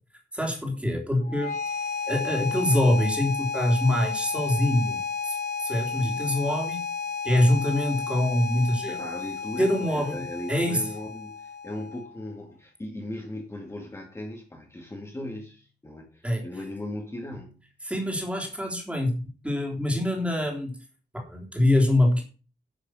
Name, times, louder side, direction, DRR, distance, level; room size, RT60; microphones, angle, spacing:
voice 1, 0.3-1.6 2.1-5.0 5.2-5.3 5.6-6.9 7.2-9.0 9.6-10.2 10.5-10.8 16.2-16.5 17.9-20.7 21.1-22.2, left 1 dB, 5° right, 3.3 m, -24 dB
sound 1, 1.2-12.2, left 5 dB, 70° left, 3.3 m, -32 dB
voice 2, 8.9-17.7, left 1 dB, 15° left, 2.1 m, -38 dB
10.5 x 6.7 x 6.3 m
wide cardioid pair, 155°, 18 cm